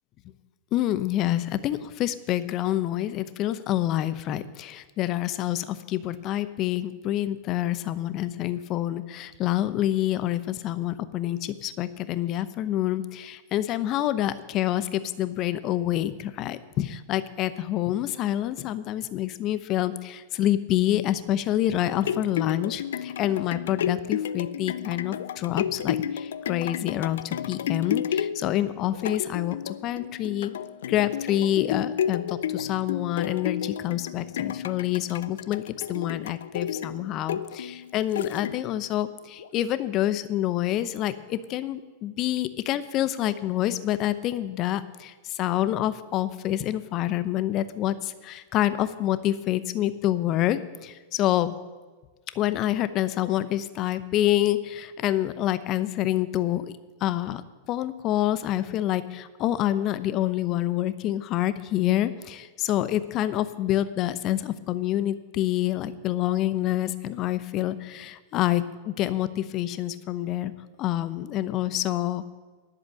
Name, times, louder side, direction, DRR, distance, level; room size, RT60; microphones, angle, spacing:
voice 1, 0.7-30.5 30.9-35.6 35.9-51.5 52.3-56.6 57.0-57.4 57.7-70.5 70.8-72.3, left 13 dB, 40° left, 13 dB, 0.8 m, -27 dB
sound 1, 21.8-38.9 39.4-39.5, left 9 dB, 70° left, 0.4 m, -32 dB
10.5 x 7.9 x 8.6 m, 1.3 s
hypercardioid pair, 95°, 0 cm